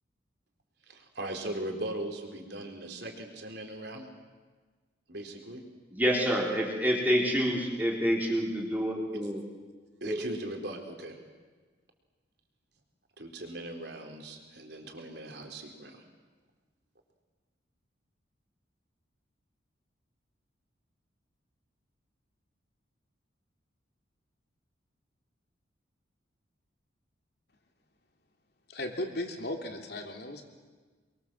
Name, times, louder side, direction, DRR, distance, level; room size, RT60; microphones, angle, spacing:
voice 1, 0.9-4.1 5.1-5.6 10.0-11.2 13.2-16.0, right 1 dB, 55° right, 3 dB, 4.0 m, -39 dB
voice 2, 5.9-9.4 10.0-10.2, equal, 10° right, -2 dB, 4.0 m, -27 dB
voice 3, 28.7-30.5, left 1 dB, 55° left, 3 dB, 3.1 m, -36 dB
28.5 x 23.0 x 7.7 m, 1.4 s
head